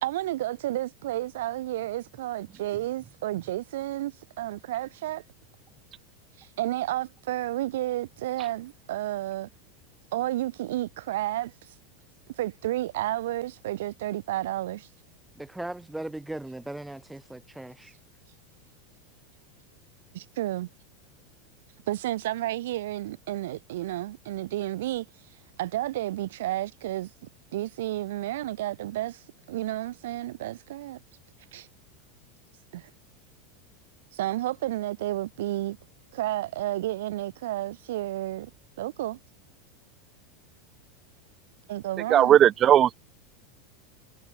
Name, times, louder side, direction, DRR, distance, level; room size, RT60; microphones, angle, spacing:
voice 1, 0.0-5.2 6.4-9.5 10.1-11.5 12.4-14.9 20.1-20.7 21.9-25.1 25.6-27.1 27.5-31.0 31.5-31.7 32.7-32.9 34.1-35.8 36.1-38.5 38.8-39.2 41.7-42.4, right 15 dB, 80° right, 2.4 m, -31 dB
voice 2, 15.4-17.9, right 1 dB, 5° right, 1.8 m, -38 dB
voice 3, 42.1-42.9, right 11 dB, 30° right, 0.3 m, -17 dB
supercardioid pair, 145°, 0 cm